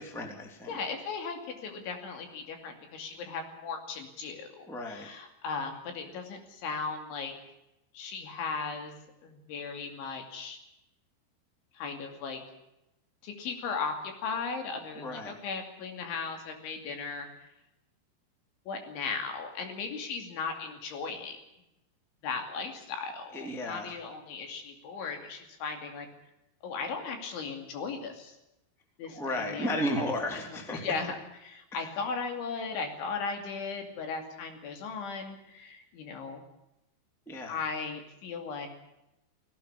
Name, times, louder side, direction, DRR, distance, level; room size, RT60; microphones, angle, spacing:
voice 1, 0.0-0.7 4.7-5.1 15.0-15.3 23.3-23.9 29.0-30.9 31.7-31.9 37.3-37.6, left 1 dB, ahead, 2 dB, 1.7 m, -34 dB
voice 2, 0.7-7.3 7.9-10.6 11.7-12.4 13.2-17.3 18.7-21.4 22.2-26.1 26.6-28.4 29.0-29.7 30.3-31.2 31.4-36.4 37.5-38.7, left 5 dB, 65° left, 4 dB, 4.8 m, -37 dB
18.5 x 17.0 x 9.6 m, 0.88 s
omnidirectional pair, 5.9 m